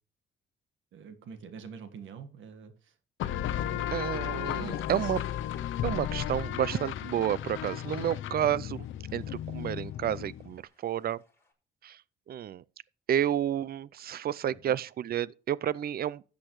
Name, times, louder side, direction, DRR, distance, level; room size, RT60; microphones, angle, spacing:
voice 1, 0.9-2.9 3.5-3.9 4.6-5.1 14.5-14.8, right 6 dB, 75° right, 1.6 m, -46 dB
sound 1, 3.2-10.6, left 11 dB, 80° left, 0.7 m, -34 dB
sound 2, 3.9-11.5, left 2 dB, 10° left, 5.4 m, -62 dB
voice 2, 3.9-5.2 5.8-8.9 9.1-11.2 11.8-12.0 12.3-12.6 13.1-16.2, right 10 dB, 50° right, 0.5 m, -30 dB
13.0 x 8.5 x 3.1 m
cardioid pair, 90°, 20 cm